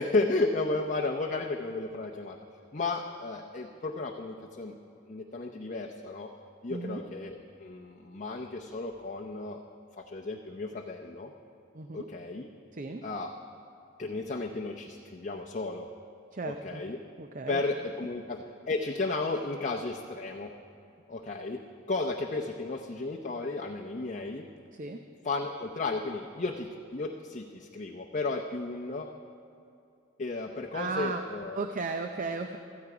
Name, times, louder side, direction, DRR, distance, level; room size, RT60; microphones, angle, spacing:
voice 1, 0.0-2.4 2.7-4.8 5.1-6.3 6.6-9.6 10.0-11.3 11.9-12.5 13.0-13.3 14.0-15.9 16.4-17.0 17.5-20.5 21.1-21.6 21.9-24.5 25.2-29.1 30.2-31.7, left 3 dB, 40° left, 1 dB, 0.6 m, -33 dB
voice 2, 6.7-7.0 11.7-12.1 12.7-13.0 16.3-16.8 17.2-17.6 24.7-25.0 30.7-31.2 31.5-32.6, right 3 dB, 40° right, 6 dB, 0.5 m, -35 dB
16.0 x 14.0 x 4.9 m, 2.6 s
head